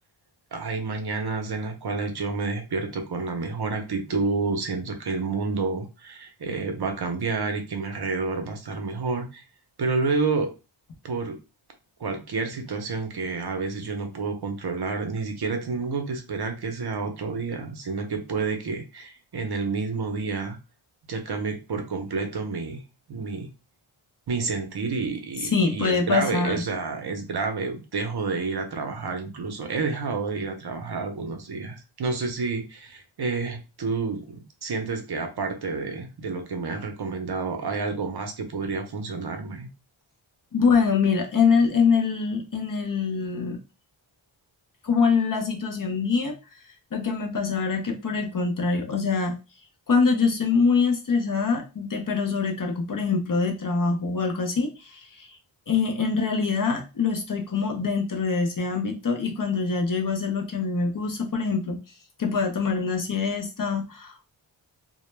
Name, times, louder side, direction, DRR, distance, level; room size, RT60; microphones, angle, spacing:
voice 1, 0.5-9.4 9.8-10.5 11.0-11.4 12.0-20.6 21.1-22.8 23.1-23.5 24.3-39.7, right 4 dB, 50° right, 5 dB, 0.6 m, -29 dB
voice 2, 25.5-26.6 40.5-43.6 44.8-46.4 46.9-49.4 49.9-55.3 55.7-61.8 62.2-64.3, left 5 dB, 45° left, 3 dB, 0.6 m, -24 dB
2.1 x 2.0 x 3.1 m, 0.29 s
wide cardioid pair, 75°, 49 cm